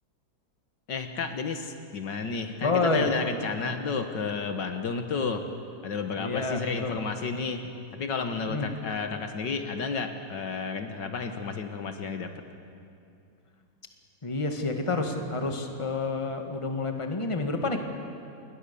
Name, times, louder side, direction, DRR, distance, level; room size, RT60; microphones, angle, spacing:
voice 1, 0.9-5.5 5.8-12.3, left 5 dB, 70° left, 7 dB, 2.0 m, -32 dB
voice 2, 2.6-3.1 6.2-7.0 8.4-8.7 14.2-17.8, left 3 dB, 15° left, 4 dB, 1.7 m, -29 dB
28.0 x 21.5 x 6.9 m, 2.5 s
omnidirectional pair, 2.0 m